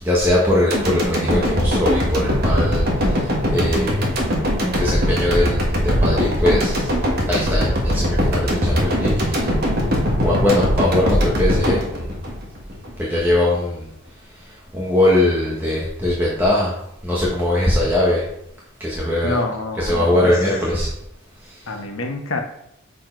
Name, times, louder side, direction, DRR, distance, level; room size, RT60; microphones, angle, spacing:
voice 1, 0.0-4.1 4.8-6.9 7.3-9.5 10.2-12.1 13.0-13.9 14.4-16.7 17.0-18.2 18.8-19.4 19.7-20.9 21.4-21.6, left 1 dB, 10° right, -6 dB, 1.0 m, -21 dB
sound 1, 0.7-12.9 13.3-13.4, equal, 45° right, 1.3 m, -21 dB
voice 2, 19.2-20.4 21.7-22.4, left 2 dB, 80° left, 4 dB, 1.0 m, -27 dB
6.2 x 4.2 x 4.4 m, 0.78 s
head